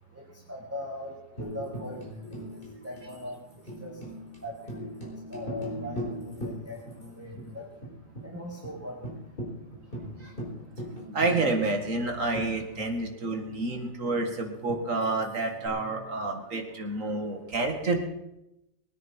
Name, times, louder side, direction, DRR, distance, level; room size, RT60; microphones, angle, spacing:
voice 1, 0.5-2.4 2.8-3.4 3.8-3.9 4.4-4.5 5.0-7.6 8.2-9.0, left 1 dB, 10° right, -2 dB, 2.1 m, -40 dB
Tambourine, 1.4-7.1 7.4-7.5 7.8-8.3 8.6-8.7 9.0-13.2 14.7-15.7, equal, 30° left, 4.3 m, -40 dB
voice 2, 5.8-6.1 7.2-7.5 10.2-10.3 10.8-18.0, right 3 dB, 45° right, 3 dB, 2.4 m, -29 dB
22.5 x 9.7 x 4.5 m, 0.87 s
omnidirectional pair, 2.0 m